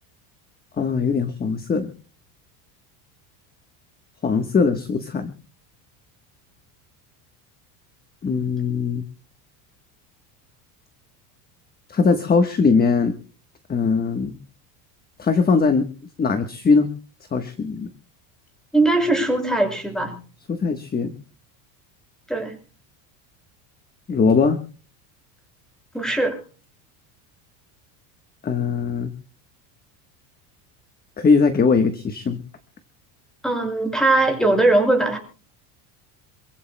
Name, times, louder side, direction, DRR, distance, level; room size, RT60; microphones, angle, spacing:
voice 1, 0.8-1.9 4.2-5.3 8.2-9.0 11.9-13.1 13.7-14.3 15.2-15.9 16.2-16.9 17.3-17.9 20.5-21.1 24.1-24.6 28.4-29.1 31.2-32.4, left 4 dB, 20° left, 9 dB, 1.3 m, -20 dB
voice 2, 18.7-20.2 22.3-22.6 25.9-26.4 33.4-35.2, right 2 dB, ahead, 5 dB, 5.8 m, -20 dB
27.0 x 15.5 x 2.2 m, 0.37 s
supercardioid pair, 125°, 46 cm